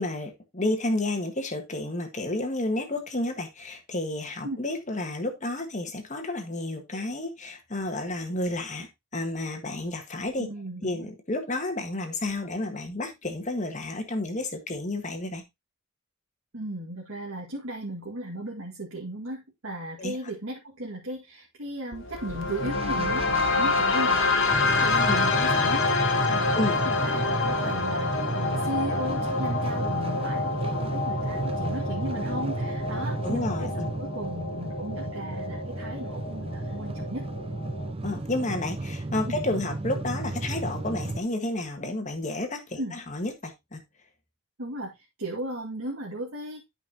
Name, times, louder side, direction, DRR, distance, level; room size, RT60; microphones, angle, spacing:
voice 1, 0.0-10.5 10.8-15.4 20.0-20.2 25.1-25.2 26.5-26.8 33.2-33.9 38.0-43.8, left 2 dB, 35° left, 1.5 m, -31 dB
voice 2, 10.4-11.1 16.5-37.3 39.3-39.4 42.8-43.0 44.6-46.7, right 1 dB, 70° right, 2.0 m, -36 dB
sound 1, 21.9-37.9, left 3 dB, 60° left, 1.2 m, -28 dB
sound 2, 22.7-41.2, right 2 dB, 25° right, 0.5 m, -33 dB
11.5 x 5.4 x 2.8 m
head